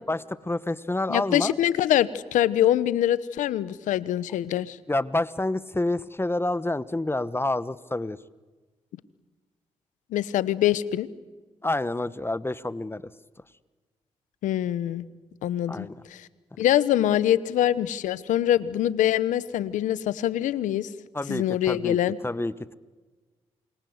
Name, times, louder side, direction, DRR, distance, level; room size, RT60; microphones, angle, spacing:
voice 1, 0.1-1.6 4.9-8.2 11.6-13.1 15.7-15.9 21.1-22.0 22.2-22.8, left 2 dB, 20° left, 16 dB, 1.2 m, -28 dB
voice 2, 1.1-4.8 10.1-11.1 14.4-15.1 15.4-16.3 16.6-20.9 21.3-22.2, left 12 dB, 90° left, 17 dB, 1.1 m, -24 dB
28.5 x 24.0 x 8.1 m, 1.3 s
supercardioid pair, 50°, 13 cm